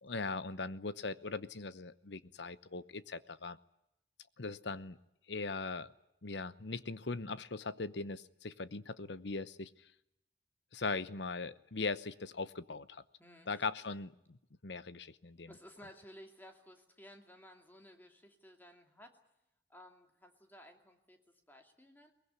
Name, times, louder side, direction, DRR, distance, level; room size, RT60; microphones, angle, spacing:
voice 1, 0.0-3.6 4.4-5.0 5.3-5.9 6.2-9.7 10.7-13.0 13.5-14.4 14.6-15.5, left 3 dB, 80° left, 15 dB, 0.9 m, -40 dB
voice 2, 13.2-13.7 15.5-19.1 19.7-21.2 21.5-22.1, equal, 10° left, 4 dB, 2.6 m, -56 dB
22.5 x 20.0 x 9.7 m, 0.82 s
head